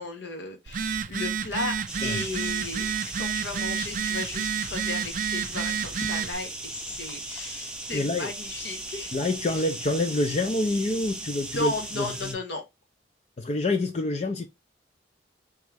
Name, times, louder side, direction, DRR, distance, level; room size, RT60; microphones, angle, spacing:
voice 1, 0.0-2.9 3.2-9.1 11.5-12.6, left 3 dB, 70° left, 1.2 m, -35 dB
Telephone, 0.7-6.3, right 7 dB, 45° right, 0.4 m, -30 dB
sound 1, 1.9-12.3, right 2 dB, 5° right, 0.6 m, -37 dB
voice 2, 7.9-8.3 9.1-12.4 13.4-14.5, left 2 dB, 35° left, 0.4 m, -27 dB
3.6 x 3.1 x 3.3 m
head